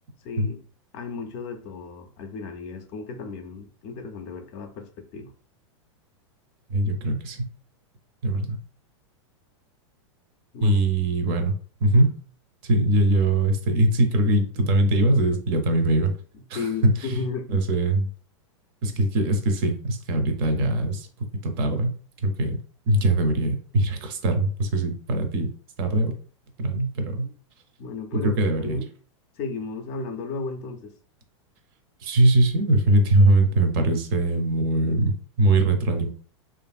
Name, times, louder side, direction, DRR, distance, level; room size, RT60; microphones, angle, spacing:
voice 1, 0.2-0.6 0.9-5.3 10.5-10.8 11.9-12.1 16.3-17.5 27.2-27.3 27.8-28.9 29.4-30.9, left 4 dB, 35° left, 6 dB, 0.4 m, -34 dB
voice 2, 6.7-7.5 8.2-8.6 10.6-11.6 11.8-12.1 12.6-16.1 16.5-17.2 17.5-18.1 18.8-22.6 22.9-25.5 25.8-26.2 26.6-27.3 28.1-28.8 32.0-36.1, right 1 dB, 50° right, 6 dB, 0.5 m, -22 dB
2.7 x 2.5 x 2.3 m, 0.43 s
supercardioid pair, 145°, 16 cm